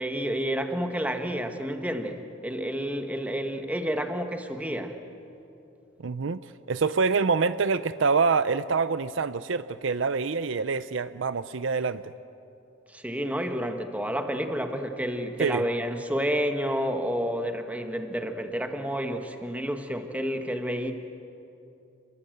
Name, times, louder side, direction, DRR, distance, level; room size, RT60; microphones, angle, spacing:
voice 1, 0.0-5.0 12.9-20.9, equal, 5° right, 6 dB, 1.5 m, -30 dB
voice 2, 6.0-6.4 6.7-12.1 15.4-15.7, right 5 dB, 65° right, 14 dB, 0.6 m, -26 dB
29.5 x 22.0 x 7.9 m, 2.8 s
head